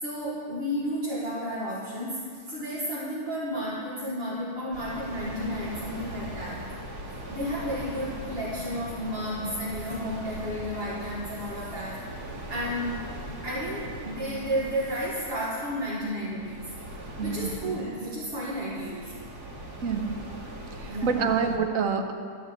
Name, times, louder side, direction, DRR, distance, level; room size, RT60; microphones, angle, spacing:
voice 1, 0.0-6.7 7.3-12.0 12.5-13.0 13.4-16.7 17.2-19.1 20.0-20.1 20.9-21.2, equal, 40° right, -8 dB, 1.7 m, -32 dB
sound 1, 4.7-21.6, right 1 dB, 85° right, 2.3 m, -40 dB
voice 2, 17.2-17.5 19.8-20.1 20.7-22.1, right 6 dB, 60° right, 5 dB, 1.1 m, -27 dB
12.0 x 5.0 x 8.0 m, 2.2 s
omnidirectional pair, 1.7 m